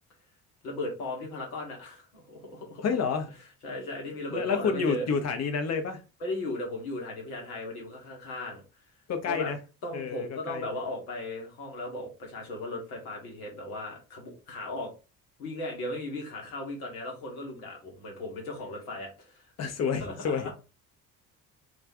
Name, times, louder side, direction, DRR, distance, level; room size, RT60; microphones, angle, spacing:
voice 1, 0.6-2.8 3.6-5.1 6.2-8.6 9.2-9.5 9.8-14.9 15.4-19.5 19.9-20.5, left 1 dB, 75° left, 1.1 m, -37 dB
voice 2, 2.8-3.3 4.3-6.0 9.1-9.6 9.9-10.7 19.6-20.5, left 5 dB, 35° left, 0.7 m, -29 dB
2.4 x 2.3 x 3.5 m
figure-of-eight pair, 50°, 44 cm